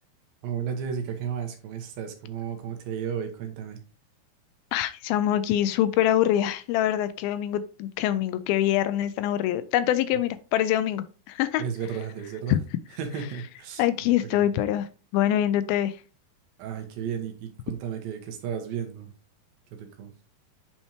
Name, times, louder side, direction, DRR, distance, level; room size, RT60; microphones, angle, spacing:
voice 1, 0.4-3.8 11.6-12.6 13.0-13.8 14.2-14.4 16.6-19.1 19.7-20.1, right 7 dB, 75° right, 2.8 m, -33 dB
voice 2, 4.7-11.6 12.5-12.6 13.8-16.0, left 12 dB, 80° left, 2.3 m, -24 dB
8.8 x 4.3 x 3.0 m
omnidirectional pair, 4.4 m